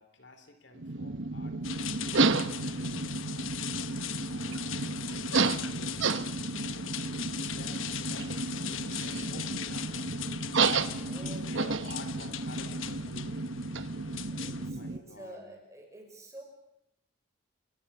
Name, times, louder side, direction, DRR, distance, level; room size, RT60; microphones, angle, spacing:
voice 1, 0.0-3.6 4.2-6.2 6.5-10.2 11.0-13.4 14.6-15.5, left 2 dB, 60° left, 8 dB, 3.3 m, -51 dB
sound 1, 0.7-15.0, right 3 dB, 70° right, 1.1 m, -32 dB
sound 2, 1.6-14.7, left 10 dB, 85° left, 1.1 m, -40 dB
voice 2, 11.1-11.7 14.4-16.4, right 1 dB, 15° right, 2 dB, 6.1 m, -48 dB
29.5 x 21.5 x 6.8 m, 0.79 s
head